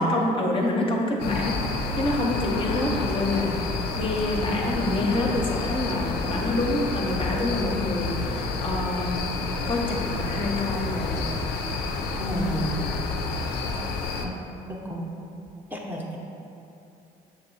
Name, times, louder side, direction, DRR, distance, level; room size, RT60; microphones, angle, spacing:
voice 1, 0.0-9.1 9.7-11.2, left 1 dB, 30° left, -2 dB, 0.7 m, -27 dB
sound 1, 1.2-14.3, left 3 dB, 70° left, 0.4 m, -29 dB
voice 2, 12.2-12.7 14.2-14.3 14.7-15.1 15.7-16.2, right 1 dB, 10° right, -2 dB, 0.7 m, -30 dB
6.4 x 2.7 x 2.7 m, 2.7 s
supercardioid pair, 65°, 17 cm